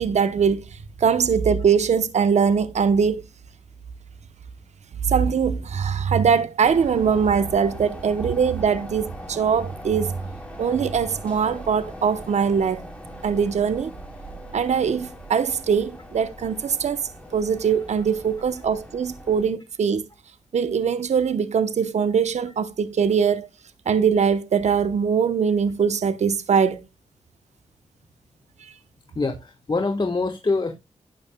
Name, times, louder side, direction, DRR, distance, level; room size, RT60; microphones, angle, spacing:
voice 1, 0.0-3.2 5.0-10.2 10.6-12.8 13.2-13.9 14.5-17.0 17.3-20.1 20.5-23.5 23.9-26.8 28.6-28.7, right 6 dB, 70° right, 0.9 m, -22 dB
sound 1, 6.6-19.5, equal, 10° left, 3.6 m, -40 dB
voice 2, 29.1-30.7, left 3 dB, 35° left, 1.3 m, -24 dB
12.0 x 8.7 x 2.2 m
cardioid pair, 55°, 12 cm